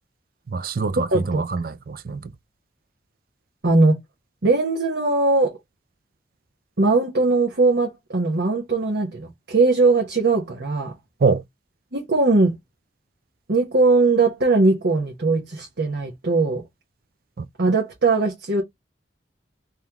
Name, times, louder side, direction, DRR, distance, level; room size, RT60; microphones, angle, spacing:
voice 1, 0.5-2.3 11.2-11.4 17.4-17.5, right 4 dB, 50° right, 0.4 m, -24 dB
voice 2, 1.1-1.4 3.6-4.0 4.4-5.5 6.8-10.9 11.9-12.5 13.5-16.6 17.6-18.6, right 3 dB, 70° right, 1.1 m, -20 dB
3.6 x 3.1 x 3.0 m
head